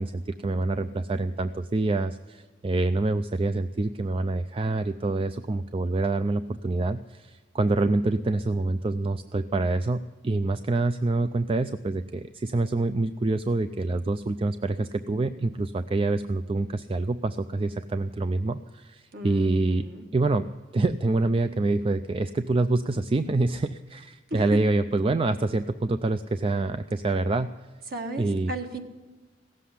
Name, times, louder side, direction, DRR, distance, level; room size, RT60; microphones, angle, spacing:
voice 1, 0.0-19.8 20.1-27.5 28.2-28.5, right 2 dB, 30° right, 10 dB, 0.4 m, -26 dB
voice 2, 19.1-20.0 24.3-24.4 27.9-28.8, right 1 dB, 55° right, 4 dB, 1.6 m, -35 dB
16.5 x 7.6 x 10.0 m, 1.3 s
head